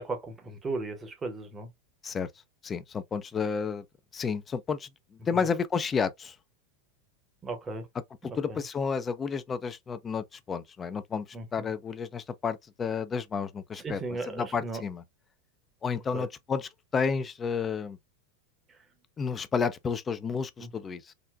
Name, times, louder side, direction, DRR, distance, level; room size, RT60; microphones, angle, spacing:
voice 1, 0.0-1.7 5.3-5.4 7.4-7.9 8.2-8.6 11.3-11.7 13.8-14.8 16.1-16.3 20.6-20.7, right 3 dB, 20° right, 1.0 m, -36 dB
voice 2, 2.6-3.8 4.1-4.9 5.3-6.3 8.2-11.3 11.5-15.0 15.8-18.0 19.2-21.1, left 5 dB, 25° left, 0.5 m, -31 dB
3.9 x 2.1 x 2.4 m
figure-of-eight pair, 90°, 0 cm